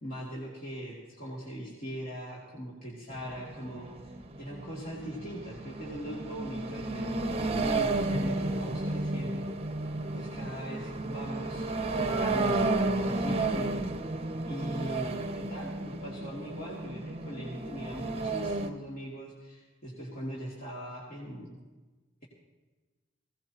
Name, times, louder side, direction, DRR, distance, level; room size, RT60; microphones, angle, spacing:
voice 1, 0.0-7.1 7.4-9.5 10.1-13.7 14.5-21.5, equal, 45° left, -6 dB, 2.7 m, -41 dB
sound 1, 3.1-18.7, right 2 dB, 30° right, 0.8 m, -32 dB
22.0 x 17.0 x 3.0 m, 1.2 s
head